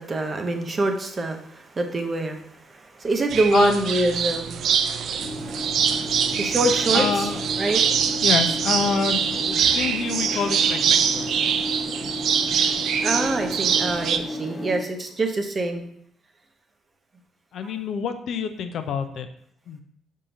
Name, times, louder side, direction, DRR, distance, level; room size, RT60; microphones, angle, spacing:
voice 1, 0.0-4.7 6.4-7.3 7.6-7.8 13.0-15.9 17.6-17.7, right 2 dB, 40° right, 4 dB, 0.8 m, -25 dB
sound 1, 3.3-14.2, right 7 dB, 65° right, 0.3 m, -24 dB
voice 2, 3.5-3.9 6.9-7.4 8.2-11.3 17.5-19.3 19.7-19.8, left 5 dB, 65° left, 7 dB, 0.5 m, -26 dB
sound 2, 5.2-14.8, equal, 25° left, 0.9 m, -33 dB
5.5 x 3.6 x 2.6 m, 0.69 s
supercardioid pair, 55°, 0 cm